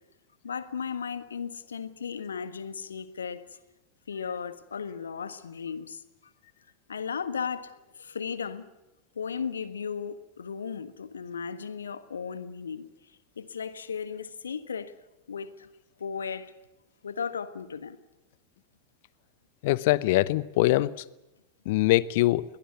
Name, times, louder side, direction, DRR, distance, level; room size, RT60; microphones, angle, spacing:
voice 1, 0.4-3.6 4.1-6.0 6.9-8.7 9.1-12.9 13.4-15.0 15.3-15.7 16.0-16.5 17.0-18.0, left 6 dB, 70° left, 1.5 m, -35 dB
voice 2, 19.6-20.9 21.7-22.4, left 17 dB, 50° left, 0.8 m, -23 dB
22.0 x 19.0 x 9.8 m
figure-of-eight pair, 90°, 0 cm